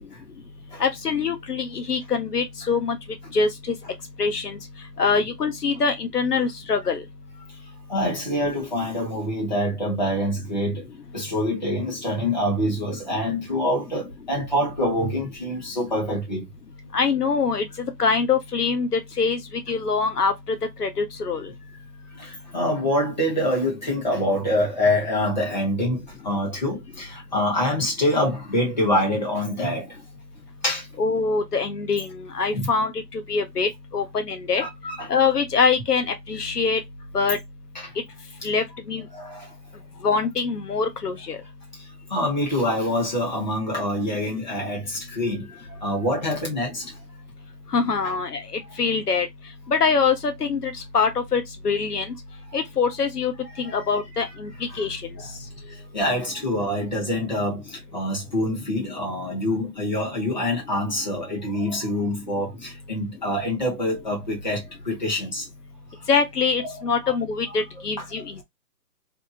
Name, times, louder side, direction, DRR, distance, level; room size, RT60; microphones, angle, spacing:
voice 1, 0.8-3.0 3.3-3.7 4.2-4.6 5.0-7.0 16.9-19.4 19.7-21.5 31.0-34.6 35.1-36.8 37.1-37.4 38.4-39.0 40.0-41.4 47.7-49.3 49.7-52.1 52.5-53.3 53.6-54.5 54.8-55.0 66.1-68.4, left 5 dB, 65° left, 0.8 m, -24 dB
voice 2, 7.9-10.9 11.1-16.4 22.1-29.9 30.6-30.9 32.5-32.7 34.6-35.1 37.7-37.9 39.1-39.5 42.1-46.9 47.8-48.1 53.6-53.9 54.7-54.9 55.2-55.3 55.6-65.4 66.6-66.8 67.0-67.2 68.0-68.3, left 1 dB, 25° left, 0.8 m, -26 dB
2.7 x 2.4 x 2.3 m
hypercardioid pair, 175°, 49 cm